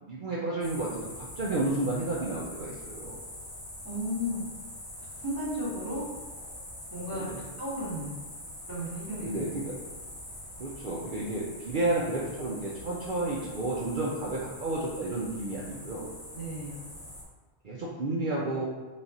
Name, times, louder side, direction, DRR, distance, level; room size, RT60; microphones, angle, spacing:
voice 1, 0.0-3.2 7.1-7.5 9.2-9.7 10.6-16.1 17.6-18.6, right 2 dB, 55° right, -5 dB, 0.7 m, -31 dB
sound 1, 0.6-17.2, left 1 dB, 85° left, 1.5 m, -44 dB
voice 2, 3.8-4.4 5.2-6.0 6.9-7.3 7.6-8.2 8.7-9.6 16.3-16.8, equal, 20° right, -7 dB, 1.2 m, -34 dB
4.2 x 2.4 x 4.0 m, 1.3 s
omnidirectional pair, 1.2 m